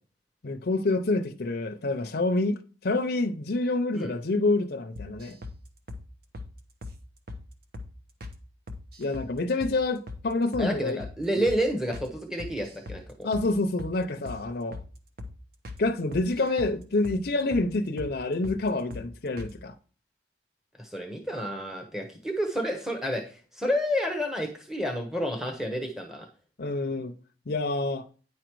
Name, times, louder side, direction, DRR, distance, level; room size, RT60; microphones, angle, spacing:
voice 1, 0.4-5.4 9.0-11.0 13.2-14.8 15.8-19.7 26.6-27.1 27.5-28.1, left 2 dB, 55° left, 0.6 m, -27 dB
sound 1, 5.0-5.6 5.9-6.0 6.3-6.5 6.8-7.0 7.3-7.4 7.7-7.9 8.2-8.4 8.7-9.3 9.6-9.8 10.1-10.2 10.5-10.7 11.0-11.2 11.5-11.6 11.9-12.1 12.4-13.0 13.3-13.5 13.8-14.0 14.3-14.4 14.7-14.9 15.2-15.3 15.6-15.8 16.1-16.7 17.0-17.2 17.5-17.7 18.0-18.1 18.4-18.6 18.9-19.1 19.4-19.5, left 2 dB, 55° right, 1.0 m, -39 dB
voice 2, 10.6-13.3 20.8-26.3, equal, 5° right, 1.0 m, -30 dB
9.6 x 5.0 x 4.6 m
head